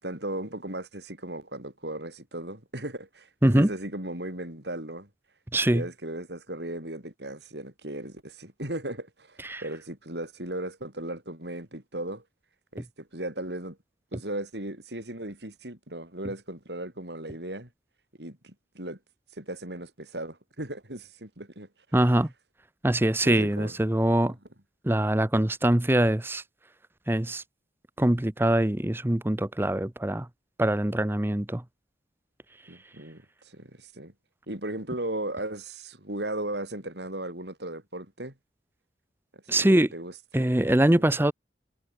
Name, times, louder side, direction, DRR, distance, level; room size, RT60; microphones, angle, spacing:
voice 1, 0.0-5.1 5.7-12.2 12.7-13.8 14.1-17.7 18.2-19.0 19.3-21.7 23.2-23.8 32.7-34.1 34.5-38.3 39.5-40.5 40.9-41.1, right 1 dB, 75° right, 6.4 m, -36 dB
voice 2, 5.5-5.8 9.4-9.6 12.8-12.9 21.9-22.3 22.8-24.4 24.8-26.4 27.1-27.4 28.0-30.3 30.6-31.6 39.5-39.9 40.3-41.3, right 1 dB, 15° right, 0.7 m, -23 dB
head